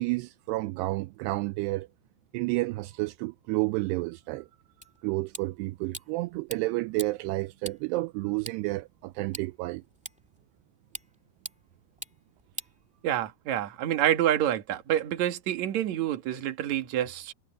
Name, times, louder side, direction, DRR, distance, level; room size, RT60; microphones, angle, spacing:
voice 1, 0.0-1.9 2.3-4.5 5.0-9.8, right 21 dB, 85° right, 2.6 m, -30 dB
sound 1, 4.8-13.4, equal, 5° right, 1.2 m, -46 dB
voice 2, 13.0-17.3, right 11 dB, 55° right, 2.5 m, -27 dB
omnidirectional pair, 4.9 m